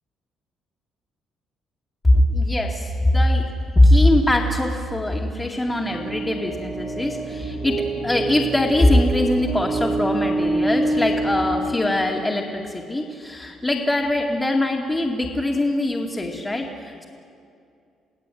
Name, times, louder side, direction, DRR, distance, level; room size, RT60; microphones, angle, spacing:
voice 1, 2.0-17.0, left 1 dB, 10° left, -5 dB, 2.4 m, -21 dB
sound 1, 5.7-12.6, right 2 dB, 35° right, 2.3 m, -27 dB
29.0 x 17.5 x 9.4 m, 2.4 s
cardioid pair, 150°, 0 cm